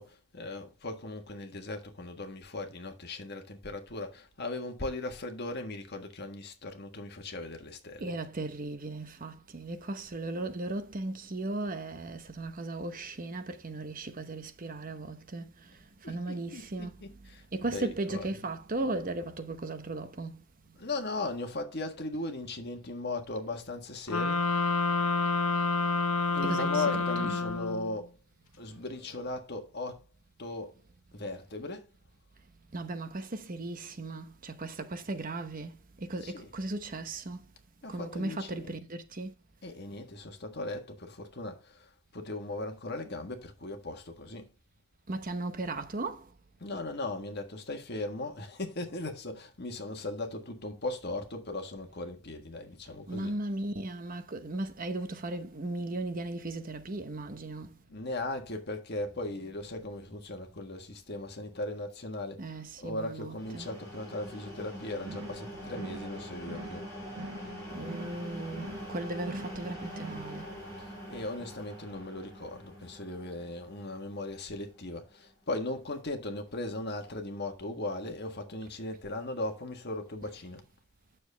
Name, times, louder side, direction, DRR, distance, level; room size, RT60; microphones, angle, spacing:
voice 1, 0.0-8.1 16.0-18.5 20.8-24.4 26.3-28.2 28.6-30.1 30.4-30.7 31.1-31.9 36.2-36.5 37.8-38.8 39.6-44.5 46.6-53.4 57.9-66.9 71.1-80.6, left 2 dB, 50° left, 1.5 m, -38 dB
voice 2, 8.0-17.0 17.5-20.4 20.7-20.8 26.4-27.3 32.7-37.5 37.9-39.3 45.1-46.3 53.1-57.8 62.4-63.7 66.6-66.7 67.7-70.5, right 2 dB, 40° right, 0.9 m, -37 dB
sound 1, 24.1-28.0, left 3 dB, 80° left, 1.1 m, -28 dB
sound 2, 63.3-75.0, equal, 15° left, 5.1 m, -44 dB
sound 3, 65.0-65.4 65.7-66.1 66.4-66.8 67.1-67.5 67.8-68.2 68.5-68.9 69.2-69.6 69.9-70.3, right 2 dB, 65° right, 0.9 m, -44 dB
9.3 x 7.0 x 3.4 m
head